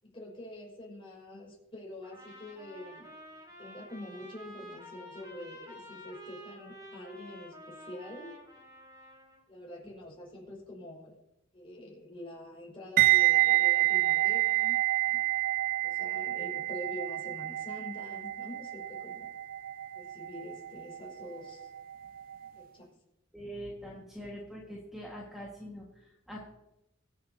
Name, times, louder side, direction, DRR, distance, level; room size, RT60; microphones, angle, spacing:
voice 1, 0.0-3.1 3.6-8.3 9.5-11.2 11.5-14.8 15.1-15.3 15.8-19.3 19.9-21.7 22.6-22.9 23.8-23.9, left 1 dB, 25° left, -3 dB, 5.2 m, -46 dB
Trumpet, 2.0-9.4, equal, 20° right, 2.8 m, -50 dB
sound 1, 13.0-21.9 22.2-22.5, right 18 dB, 45° right, 0.4 m, -28 dB
voice 2, 23.3-26.5, equal, ahead, -4 dB, 1.6 m, -43 dB
23.0 x 7.9 x 2.8 m, 0.86 s
head